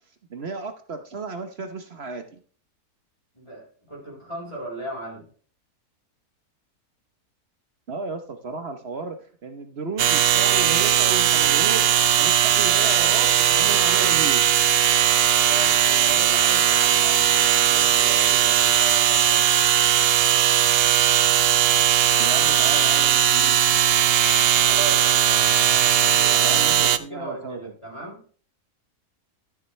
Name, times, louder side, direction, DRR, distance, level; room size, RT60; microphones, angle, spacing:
voice 1, 0.3-2.4 7.9-9.2 9.4-13.3 13.6-14.5 22.2-23.6 26.4-27.7, right 4 dB, 45° right, 7 dB, 1.1 m, -33 dB
voice 2, 3.3-5.3 15.3-19.5 24.6-28.2, right 2 dB, 20° left, -6 dB, 4.3 m, -37 dB
sound 1, 10.0-27.0, right 10 dB, 80° right, 0.5 m, -19 dB
12.5 x 7.2 x 3.2 m, 0.44 s
omnidirectional pair, 1.6 m